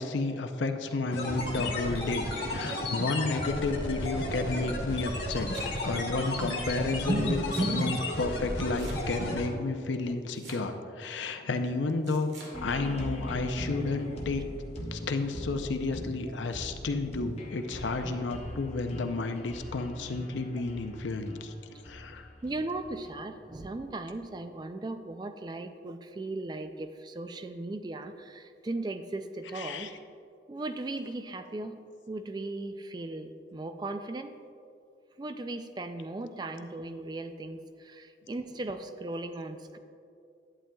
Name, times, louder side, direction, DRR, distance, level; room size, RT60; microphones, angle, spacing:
voice 1, 0.0-5.5 5.8-14.4 14.9-22.3 29.5-29.9, left 3 dB, 85° left, 7 dB, 0.6 m, -32 dB
sound 1, 1.1-9.5, left 1 dB, 65° left, 1.4 m, -33 dB
Domestic sounds home sounds, 5.2-6.0 7.1-7.8 8.8-9.4 10.3-11.0 12.0-12.6, right 2 dB, 80° right, 1.5 m, -47 dB
voice 2, 7.1-7.9 22.4-29.9 30.5-31.8 32.1-34.4 35.2-39.8, right 2 dB, 25° right, 8 dB, 0.3 m, -36 dB
sound 2, 12.5-24.3, equal, 35° left, 0.8 m, -41 dB
11.0 x 8.8 x 2.3 m, 2.4 s
head